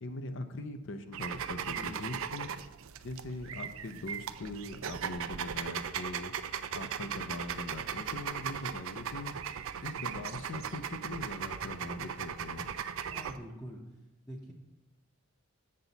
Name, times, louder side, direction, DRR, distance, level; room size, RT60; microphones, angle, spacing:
voice 1, 0.0-2.5 3.0-6.3 6.7-9.3 9.8-12.7, left 2 dB, 55° left, 8 dB, 0.5 m, -41 dB
sound 1, 1.1-13.4, right 7 dB, 65° right, 0.4 m, -38 dB
voice 2, 1.7-2.1 13.1-13.8 14.3-14.5, equal, 15° left, -3 dB, 0.7 m, -45 dB
7.5 x 6.9 x 4.0 m, 1.1 s
head